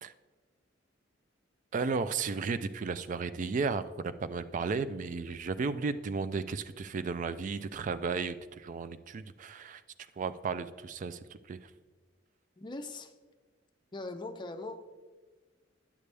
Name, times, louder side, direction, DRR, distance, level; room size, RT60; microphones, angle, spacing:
voice 1, 1.7-9.8 10.2-11.2 11.5-11.6, right 4 dB, 40° right, 13 dB, 0.3 m, -34 dB
voice 2, 12.6-13.1 13.9-14.8, left 2 dB, 25° left, 6 dB, 0.5 m, -40 dB
9.8 x 6.8 x 3.3 m, 1.4 s
head